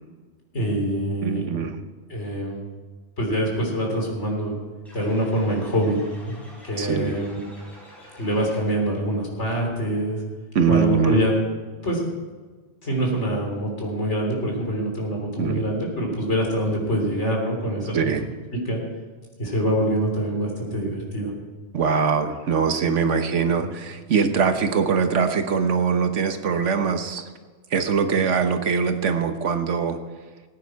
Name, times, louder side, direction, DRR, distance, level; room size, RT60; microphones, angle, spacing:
voice 1, 0.5-1.5 2.1-2.6 3.2-4.6 4.9-6.0 6.2-6.4 6.6-7.4 8.2-10.2 10.7-11.3 11.8-12.0 12.8-18.1 18.5-18.8 19.4-21.3 23.6-23.7, right 1 dB, 70° left, 0 dB, 3.5 m, -25 dB
voice 2, 1.2-1.8 6.8-7.2 10.5-11.2 15.4-15.6 17.9-18.3 21.7-27.2 27.7-30.0, right 6 dB, 80° right, 7 dB, 1.4 m, -22 dB
sound 1, 4.8-9.0, equal, ahead, 5.3 m, -47 dB
19.0 x 9.3 x 4.7 m, 1.4 s
omnidirectional pair, 1.2 m